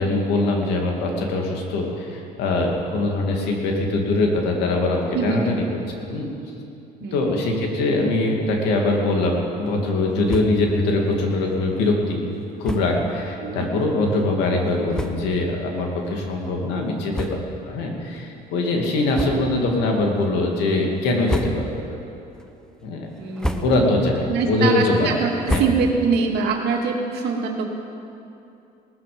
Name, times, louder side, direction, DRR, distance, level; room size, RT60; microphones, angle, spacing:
voice 1, 0.0-6.3 7.1-12.3 12.6-17.4 17.6-21.7 22.8-23.1 23.6-25.1 25.5-25.6, left 2 dB, 90° left, 1 dB, 2.6 m, -22 dB
voice 2, 5.1-5.6 7.0-7.4 13.4-13.7 19.3-19.4 23.2-23.7 24.3-27.6, right 5 dB, 80° right, 1 dB, 2.3 m, -24 dB
sound 1, 10.2-10.7 11.1-11.2 11.5-11.6 12.6-13.0 13.8-13.9 14.6-14.7 14.9-15.5 16.0-16.1 17.1-17.8 18.1-18.3 19.1-19.7 20.1-20.6 21.1-21.9 22.3-22.8 23.2-24.0 24.4-26.2, equal, 5° left, 0.9 m, -30 dB
19.0 x 14.0 x 5.2 m, 2.7 s
cardioid pair, 110°, 17 cm